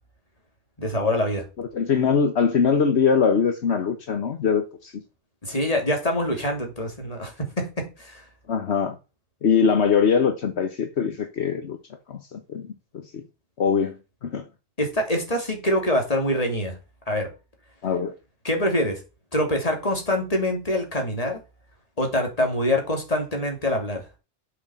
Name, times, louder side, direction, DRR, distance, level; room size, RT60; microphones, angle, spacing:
voice 1, 0.8-1.4 5.4-7.3 7.6-8.2 14.8-16.7 17.1-17.3 18.4-19.0 19.3-21.4 22.0-24.1, left 1 dB, 30° left, 3.0 m, -25 dB
voice 2, 1.6-5.0 8.5-8.9 9.4-11.8 12.1-13.2 13.6-14.4 17.8-18.1, left 6 dB, 70° left, 1.3 m, -22 dB
7.6 x 6.2 x 7.9 m
omnidirectional pair, 1.2 m